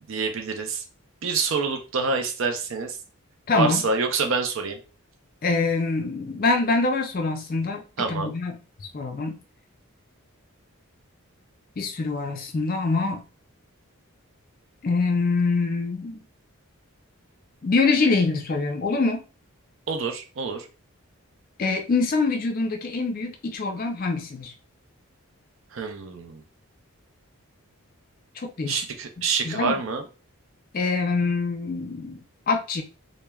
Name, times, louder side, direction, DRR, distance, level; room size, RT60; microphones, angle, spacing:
voice 1, 0.1-0.8 1.2-3.0 3.5-4.8 8.0-8.3 19.9-20.7 25.7-26.4 28.7-30.0, right 4 dB, 60° right, 5 dB, 0.5 m, -27 dB
voice 2, 3.5-3.8 5.4-8.6 8.9-9.4 11.8-13.2 14.8-16.2 17.6-19.2 21.6-24.5 28.4-28.8 29.4-29.8 30.7-32.2 32.5-32.8, left 3 dB, 40° left, 5 dB, 0.4 m, -24 dB
3.2 x 2.0 x 2.3 m, 0.33 s
head